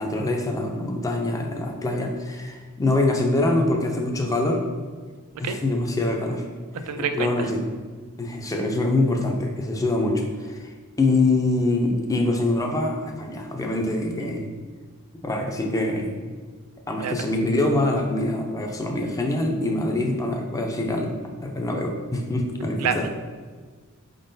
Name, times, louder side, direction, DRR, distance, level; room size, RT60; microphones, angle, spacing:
voice 1, 0.0-4.6 5.4-6.4 6.7-7.6 8.2-10.7 11.0-14.5 15.2-16.1 16.9-21.2 21.4-23.1, left 2 dB, 15° left, 2 dB, 0.4 m, -24 dB
voice 2, 6.9-7.5 17.0-17.1 22.8-23.1, right 6 dB, 85° right, 8 dB, 0.4 m, -27 dB
4.7 x 3.7 x 2.6 m, 1.5 s
head